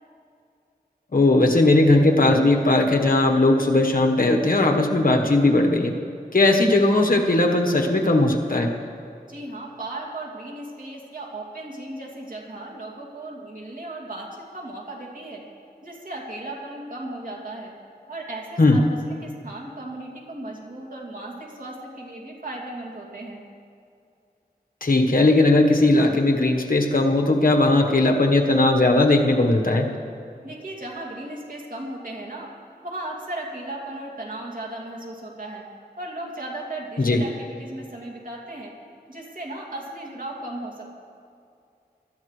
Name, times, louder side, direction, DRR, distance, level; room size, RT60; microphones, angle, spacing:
voice 1, 1.1-5.9 6.3-8.7 18.6-18.8 24.8-29.9 37.0-37.2, left 2 dB, 55° left, 2 dB, 1.3 m, -18 dB
voice 2, 9.3-15.4 15.8-17.7 18.1-23.4 30.4-32.5 32.8-35.7 36.0-38.7 39.1-41.0, right 1 dB, 55° right, -2 dB, 2.6 m, -36 dB
23.0 x 13.0 x 3.3 m, 2.4 s
wide cardioid pair, 70°, 17 cm